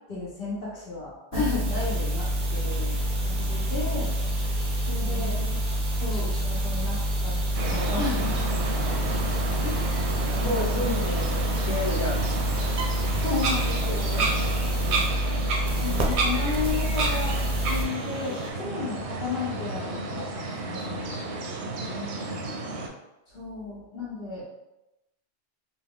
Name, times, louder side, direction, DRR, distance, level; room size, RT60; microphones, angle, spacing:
voice 1, 0.1-4.1 4.9-5.4 6.0-8.5 9.6-10.0 10.4-10.9 13.2-14.3 15.8-21.5 23.3-24.5, left 4 dB, 60° left, -7 dB, 0.9 m, -33 dB
sound 1, 1.3-17.8, right 1 dB, 50° right, 0.6 m, -27 dB
sound 2, 1.6-18.5, equal, 5° left, 0.4 m, -44 dB
voice 2, 5.0-5.6 10.3-12.2 13.5-15.0 15.8-16.5 21.8-22.5, left 1 dB, 30° left, -6 dB, 1.1 m, -34 dB
sound 3, 7.5-22.9, right 3 dB, 90° right, 0.9 m, -31 dB
2.9 x 2.3 x 3.5 m, 0.93 s
omnidirectional pair, 1.1 m